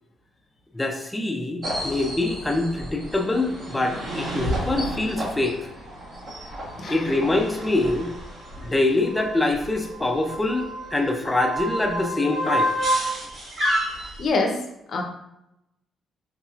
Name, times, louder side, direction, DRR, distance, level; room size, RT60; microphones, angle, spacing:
voice 1, 0.7-5.7 6.9-8.1 8.6-12.7, left 2 dB, 15° left, 3 dB, 0.6 m, -24 dB
sound 1, 1.6-14.3, equal, 55° right, 1.3 m, -30 dB
voice 2, 14.2-14.6 14.9-15.0, left 3 dB, 55° left, 2 dB, 0.7 m, -24 dB
4.0 x 2.9 x 2.4 m, 0.85 s
cardioid pair, 90°, 0 cm